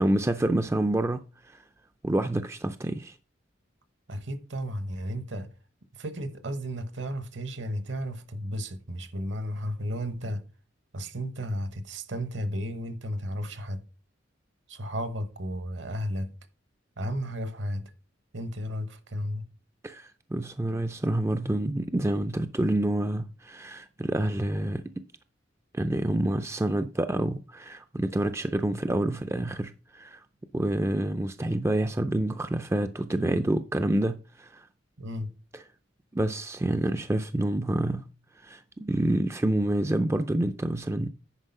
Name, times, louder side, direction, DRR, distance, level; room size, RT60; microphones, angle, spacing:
voice 1, 0.0-1.6 2.0-3.2 19.8-24.8 25.7-30.2 30.5-34.7 36.1-38.1 38.4-41.1, right 1 dB, 15° right, 0.4 m, -28 dB
voice 2, 4.1-5.5 5.9-10.4 10.9-13.8 14.7-16.3 17.0-17.9 18.3-19.5 35.0-35.3, equal, 65° right, 1.1 m, -33 dB
10.0 x 4.8 x 5.4 m
head